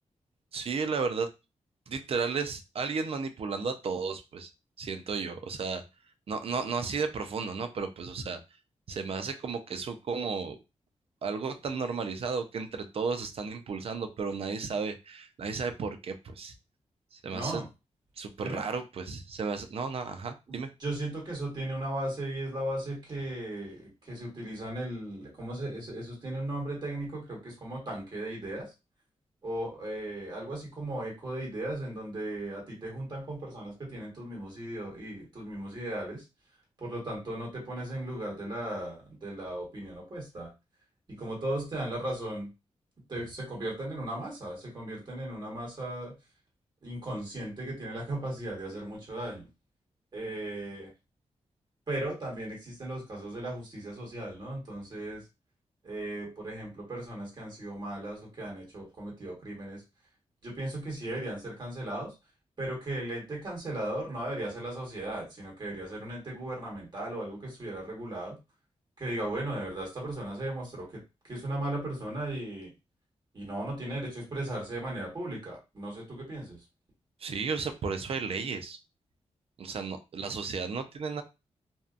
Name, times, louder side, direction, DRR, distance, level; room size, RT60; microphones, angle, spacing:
voice 1, 0.5-1.3 1.9-4.5 4.8-5.8 6.3-8.4 8.9-10.6 11.2-16.5 17.1-17.6 18.2-20.7 77.2-78.8 79.6-81.2, right 5 dB, 55° right, 8 dB, 0.4 m, -33 dB
voice 2, 17.3-17.7 18.4-18.6 20.5-28.7 29.4-36.2 36.8-40.5 41.1-42.5 43.1-46.1 46.8-49.4 50.1-50.9 51.9-55.2 55.8-59.8 60.4-62.1 62.6-68.4 69.0-71.0 71.3-72.7 73.3-76.6, right 1 dB, 40° right, -3 dB, 1.4 m, -36 dB
2.6 x 2.2 x 2.4 m, 0.26 s
wide cardioid pair, 105°, 12 cm